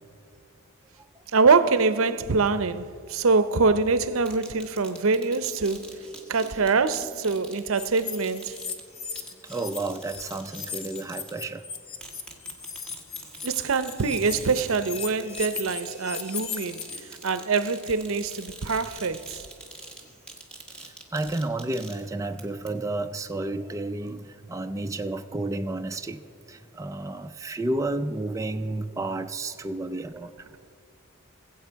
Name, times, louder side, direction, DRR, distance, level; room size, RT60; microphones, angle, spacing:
voice 1, 1.3-5.8 6.3-8.5 13.4-16.8 17.2-19.4, right 4 dB, 65° right, 0.6 m, -24 dB
sound 1, 4.2-11.6 12.0-22.4 22.7-22.8, right 2 dB, 5° left, 1.4 m, -45 dB
sound 2, 7.7-9.8 10.0-17.0, left 7 dB, 70° left, 0.9 m, -37 dB
voice 2, 9.5-11.6 21.1-24.2 24.5-26.2 26.5-30.3, right 2 dB, 15° right, 0.3 m, -31 dB
20.5 x 8.1 x 4.6 m
head